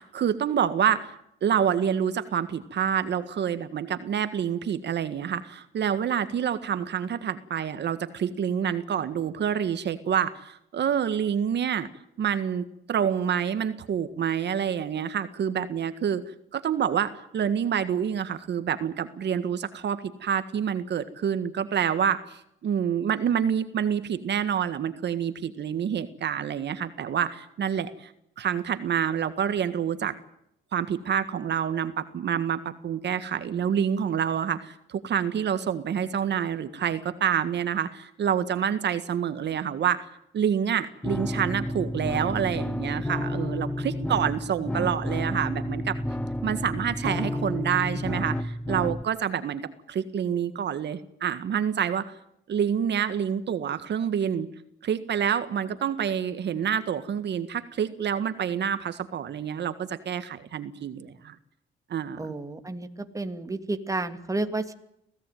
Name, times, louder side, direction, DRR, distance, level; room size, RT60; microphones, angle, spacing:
voice 1, 0.0-11.9 12.2-30.1 30.7-40.1 40.3-46.0 46.4-52.1 52.5-54.5 54.8-61.4 61.9-62.3, right 8 dB, 60° right, 11 dB, 1.7 m, -27 dB
sound 1, 41.0-49.0, left 1 dB, 5° left, 1.2 m, -30 dB
voice 2, 62.2-62.9 63.1-64.7, right 2 dB, 15° right, 7 dB, 2.7 m, -31 dB
25.0 x 17.0 x 9.3 m, 0.76 s
cardioid pair, 90°, 20 cm